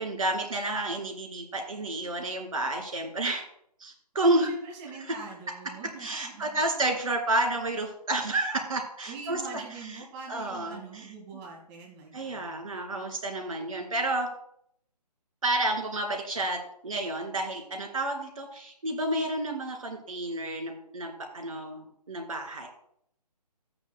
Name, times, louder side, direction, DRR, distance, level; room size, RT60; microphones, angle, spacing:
voice 1, 0.0-3.4 3.8-4.5 6.0-9.6 10.3-11.1 12.1-14.3 15.4-22.7, right 2 dB, 55° right, 4 dB, 2.5 m, -30 dB
voice 2, 4.3-6.6 9.0-12.6, right 4 dB, 15° right, -1 dB, 1.8 m, -44 dB
13.0 x 9.1 x 2.2 m, 0.70 s
figure-of-eight pair, 145°, 21 cm